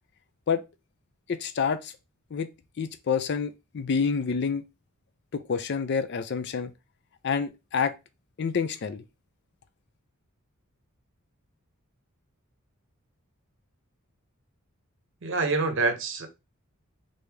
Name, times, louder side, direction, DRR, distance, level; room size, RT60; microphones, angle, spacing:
voice 1, 1.3-1.9 2.3-2.5 2.8-4.6 5.3-6.7 7.2-7.9 8.4-9.0, left 6 dB, 50° left, 0.4 m, -28 dB
voice 2, 15.2-16.3, right 3 dB, 55° right, 0.7 m, -26 dB
3.2 x 2.7 x 3.4 m
head